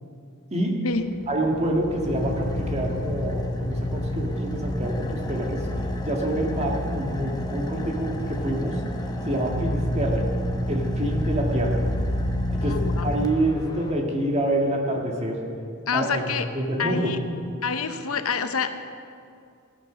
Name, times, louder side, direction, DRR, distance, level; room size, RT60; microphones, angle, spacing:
Car / Idling, 1.0-13.9, left 1 dB, 20° left, 1.0 m, -29 dB
voice 1, 1.3-5.7 6.0-8.8 9.2-10.2 10.7-11.8 12.6-15.4 15.9-17.1, right 1 dB, 30° right, 0 dB, 1.8 m, -27 dB
voice 2, 12.6-13.1 15.9-16.5 16.8-17.2 17.6-18.7, left 5 dB, 80° left, 9 dB, 0.8 m, -27 dB
15.0 x 9.8 x 6.3 m, 2.4 s
head